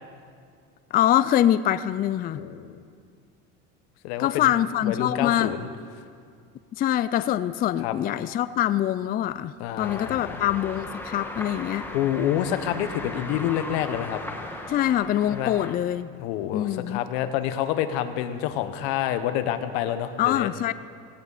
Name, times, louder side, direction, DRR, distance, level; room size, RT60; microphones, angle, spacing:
voice 1, 0.9-2.4 4.2-5.5 6.8-11.9 14.7-16.1 16.5-17.0 20.2-20.7, left 12 dB, 30° left, 15 dB, 0.4 m, -24 dB
voice 2, 2.4-2.8 4.0-4.5 4.8-5.7 7.8-7.9 9.6-10.4 11.9-14.2 15.3-15.5 16.2-20.5, left 11 dB, 80° left, 10 dB, 1.2 m, -28 dB
sound 1, 9.8-15.7, left 1 dB, 5° left, 1.5 m, -37 dB
17.5 x 17.0 x 4.1 m, 2.2 s
supercardioid pair, 115°, 31 cm